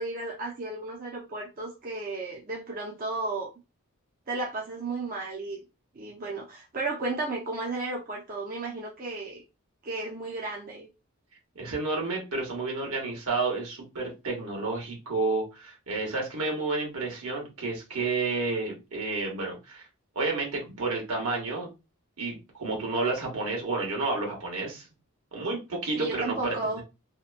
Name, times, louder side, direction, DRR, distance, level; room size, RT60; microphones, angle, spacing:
voice 1, 0.0-3.5 4.3-5.6 5.9-9.4 9.8-10.9 25.9-26.8, right 2 dB, 40° right, -2 dB, 0.5 m, -34 dB
voice 2, 11.5-19.8 20.1-21.7 22.2-24.9 25.3-26.8, right 3 dB, 75° right, -1 dB, 1.1 m, -30 dB
2.8 x 2.2 x 2.4 m, 0.27 s
head